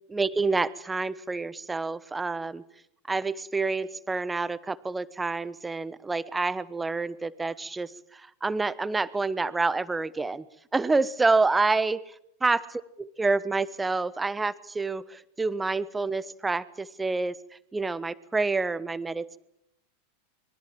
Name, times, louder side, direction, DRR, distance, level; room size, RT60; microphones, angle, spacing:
voice 1, 0.1-2.6 3.1-10.4 10.7-12.1 12.4-12.7 13.0-17.4 17.7-19.4, right 3 dB, 10° right, 18 dB, 1.1 m, -28 dB
25.5 x 23.0 x 7.5 m, 0.77 s
figure-of-eight pair, 85°, 0 cm